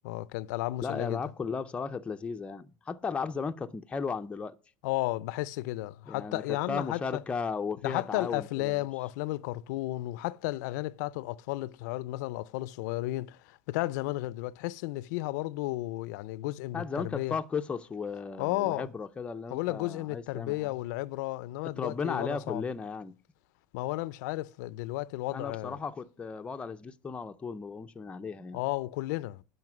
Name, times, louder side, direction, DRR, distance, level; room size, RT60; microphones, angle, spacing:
voice 1, 0.0-1.2 4.8-7.2 7.8-17.3 18.4-18.9 19.5-22.6 23.7-25.8 28.5-29.4, left 18 dB, 70° left, 0.4 m, -33 dB
voice 2, 0.8-4.6 6.1-8.8 16.7-20.7 21.6-23.2 25.3-28.6, left 5 dB, 10° left, 0.5 m, -35 dB
10.5 x 5.7 x 6.0 m
supercardioid pair, 155°, 10 cm